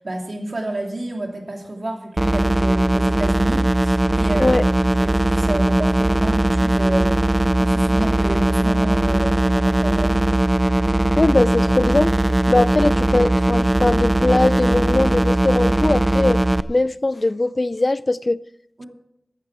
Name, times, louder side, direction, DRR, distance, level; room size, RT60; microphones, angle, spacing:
voice 1, 0.0-4.6 4.9-10.3 18.8-18.9, right 1 dB, 70° right, 2.7 m, -29 dB
sound 1, 2.2-16.6, right 1 dB, 30° right, 0.5 m, -19 dB
voice 2, 11.2-12.2 12.5-16.4 16.7-18.4, left 2 dB, 50° left, 0.4 m, -20 dB
15.0 x 11.5 x 4.7 m
wide cardioid pair, 60°, 0 cm